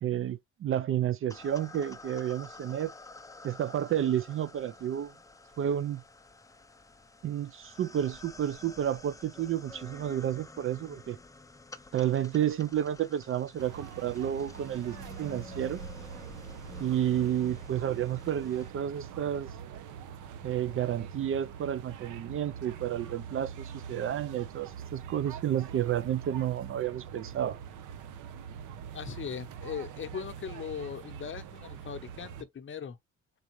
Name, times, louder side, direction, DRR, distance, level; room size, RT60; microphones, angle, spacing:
voice 1, 0.0-2.9 3.4-5.1 5.6-6.0 7.2-11.2 11.9-15.8 16.8-19.5 20.4-27.6, right 10 dB, 45° right, 0.4 m, -31 dB
sound 1, 1.3-18.7, left 3 dB, 10° left, 0.4 m, -50 dB
sound 2, 13.6-32.4, right 7 dB, 90° right, 0.7 m, -44 dB
voice 2, 28.9-33.0, left 7 dB, 40° left, 0.8 m, -39 dB
4.0 x 3.7 x 3.0 m
cardioid pair, 90°, 30 cm